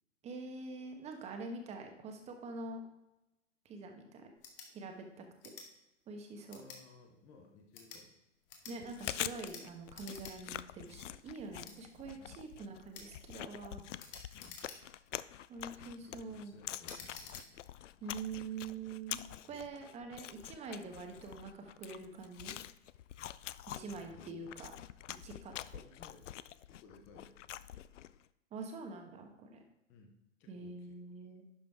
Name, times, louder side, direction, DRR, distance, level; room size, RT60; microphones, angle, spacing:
voice 1, 0.2-2.8 3.6-4.3 4.7-5.2 6.1-6.6 8.7-13.8 15.5-16.6 18.0-22.5 23.8-24.7 25.2-25.8 28.5-29.6 30.5-31.4, right 3 dB, 15° right, 4 dB, 1.1 m, -45 dB
sound 1, 4.4-4.7 5.4-5.7 6.5-6.8 7.6-8.0 8.5-8.8 9.4-9.6 9.9-10.4 10.7-10.8 11.6-11.8 12.9-13.1 14.0-15.0 15.6-15.9 16.8-17.5, left 5 dB, 45° left, 1.9 m, -50 dB
voice 2, 6.5-8.1 10.8-11.0 12.1-12.5 14.3-14.6 16.0-17.6 19.5-19.7 23.7-24.5 25.8-26.3 26.7-27.4 29.9-31.0, left 4 dB, 5° left, 2 dB, 0.3 m, -59 dB
Chewing mastication, 8.7-28.2, left 12 dB, 75° left, 0.5 m, -46 dB
11.0 x 5.1 x 3.5 m, 0.92 s
hypercardioid pair, 135°, 37 cm